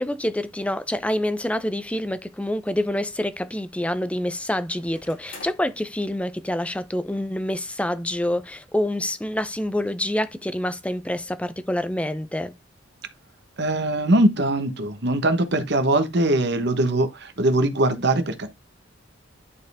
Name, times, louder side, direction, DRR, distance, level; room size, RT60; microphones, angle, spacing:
voice 1, 0.0-12.5, left 1 dB, 5° left, 0.5 m, -27 dB
sound 1, 4.7-5.7 6.7-6.8 7.0-7.1 8.2-8.5 8.8-8.9 9.4-9.5, left 3 dB, 70° left, 3.9 m, -47 dB
voice 2, 13.6-18.5, right 1 dB, 55° right, 1.1 m, -21 dB
10.5 x 4.5 x 3.4 m
head